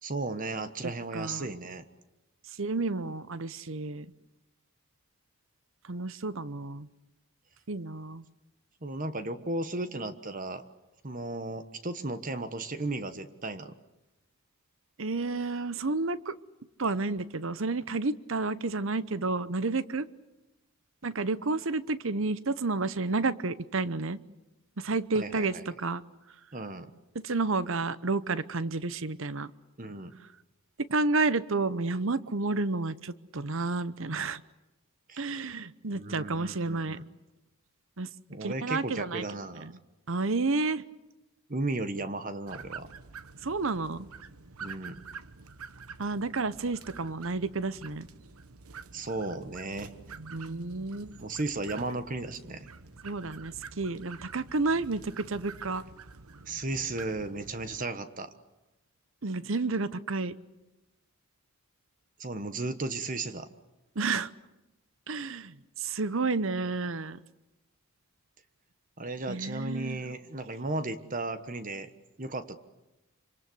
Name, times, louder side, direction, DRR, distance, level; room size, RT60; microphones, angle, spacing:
voice 1, 0.0-1.8 8.8-10.6 11.0-13.7 25.1-25.6 26.5-26.9 29.8-30.2 35.1-35.3 35.9-37.0 38.3-39.7 41.5-42.9 44.6-44.9 48.9-49.9 51.2-52.7 56.5-58.3 62.2-63.5 69.0-71.9 72.2-72.6, right 2 dB, 35° right, 11 dB, 1.3 m, -35 dB
voice 2, 1.1-1.5 2.6-4.1 5.9-6.9 7.7-8.2 15.0-16.3 16.8-20.0 21.0-24.2 24.8-26.0 27.1-29.5 30.9-34.4 35.2-37.0 38.0-38.1 38.4-39.2 39.6-39.7 40.1-40.8 43.4-44.1 46.0-48.1 50.3-51.2 53.0-55.8 59.2-60.3 64.0-64.3 65.1-67.2 69.3-70.0, right 3 dB, 60° right, 16 dB, 0.9 m, -31 dB
sound 1, 42.5-57.8, right 5 dB, 80° right, 1.2 m, -47 dB
26.0 x 26.0 x 7.9 m, 0.99 s
head